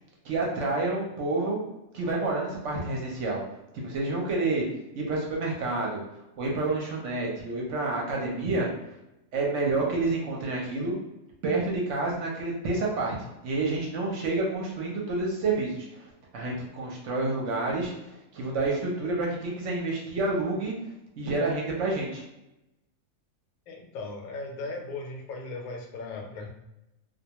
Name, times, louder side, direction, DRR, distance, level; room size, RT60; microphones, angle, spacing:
voice 1, 0.2-1.6 1.9-3.4 3.7-4.6 4.9-6.0 6.4-8.7 9.3-11.0 11.4-13.2 13.4-20.7 21.2-22.2, right 2 dB, 65° right, -2 dB, 0.9 m, -29 dB
voice 2, 23.7-26.5, left 3 dB, 80° left, 2 dB, 1.0 m, -37 dB
2.3 x 2.2 x 2.8 m, 0.91 s
omnidirectional pair, 1.5 m